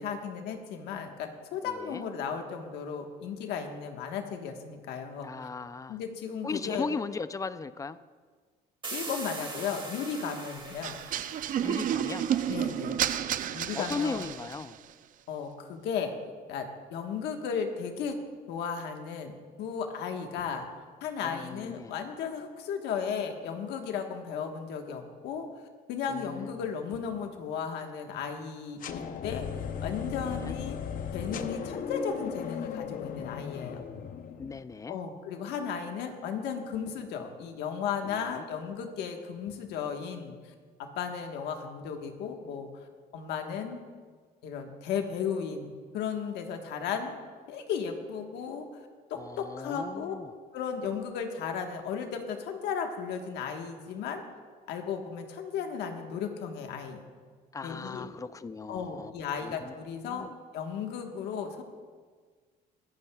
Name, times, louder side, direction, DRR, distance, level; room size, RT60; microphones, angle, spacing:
voice 1, 0.0-5.5 5.9-6.9 8.9-11.0 12.5-13.0 13.5-14.3 15.3-16.1 16.5-18.2 18.5-19.3 19.6-20.7 21.0-25.5 25.9-29.5 29.8-30.8 31.1-33.8 34.9-40.4 40.8-42.7 43.1-43.8 44.4-47.2 47.5-48.7 49.1-50.1 50.5-54.2 54.7-57.0 57.6-58.1 58.7-60.3 60.5-61.6, left 7 dB, 85° left, 4 dB, 1.4 m, -35 dB
voice 2, 1.6-2.0 5.2-6.0 6.4-8.0 11.6-13.0 13.7-14.8 21.2-21.9 26.1-26.6 30.1-30.5 34.4-35.0 38.0-38.4 49.1-50.3 57.5-59.1 59.4-59.7 60.0-60.3, left 4 dB, 20° left, 15 dB, 0.4 m, -38 dB
sound 1, 8.8-12.4, right 3 dB, 30° right, 2.2 m, -42 dB
sound 2, 10.8-14.8, right 10 dB, 55° right, 0.5 m, -31 dB
sound 3, 28.8-34.8, left 7 dB, 55° left, 0.7 m, -37 dB
24.0 x 8.8 x 2.3 m, 1.5 s
cardioid pair, 110°, 17 cm